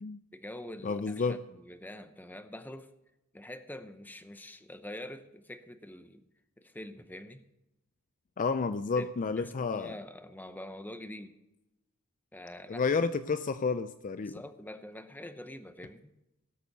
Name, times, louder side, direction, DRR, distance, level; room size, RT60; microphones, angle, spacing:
voice 1, 0.3-2.9 3.3-6.2 6.6-7.4 9.0-9.1 9.4-11.3 12.3-12.8 14.2-16.0, left 1 dB, 10° left, 9 dB, 0.8 m, -45 dB
voice 2, 0.8-1.4 8.4-9.9 12.7-14.4, left 4 dB, 35° left, 12 dB, 0.4 m, -30 dB
17.5 x 6.9 x 6.8 m, 0.91 s
head